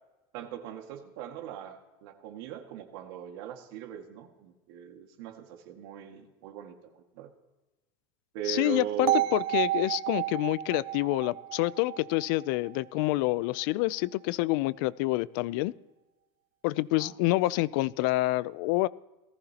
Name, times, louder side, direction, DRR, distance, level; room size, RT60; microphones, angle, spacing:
voice 1, 0.3-7.3 8.3-9.4 17.0-17.2, right 11 dB, 70° right, 4 dB, 1.9 m, -39 dB
voice 2, 8.5-15.7 16.6-18.9, left 19 dB, 60° left, 19 dB, 0.4 m, -27 dB
sound 1, 9.1-13.0, right 13 dB, 40° right, 0.4 m, -31 dB
19.0 x 14.5 x 2.9 m, 1.1 s
cardioid pair, 170°, 13 cm